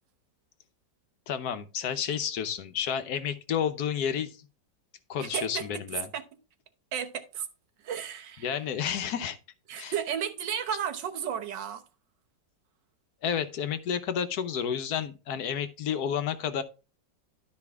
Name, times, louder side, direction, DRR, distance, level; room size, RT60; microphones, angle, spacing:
voice 1, 1.3-4.4 5.1-6.1 8.4-9.4 9.8-9.9 13.2-16.6, left 8 dB, 65° left, 1.2 m, -30 dB
voice 2, 5.2-5.8 6.1-6.2 6.9-7.5 7.8-8.5 9.7-11.8, right 8 dB, 70° right, 1.6 m, -33 dB
12.0 x 5.0 x 3.5 m
omnidirectional pair, 2.0 m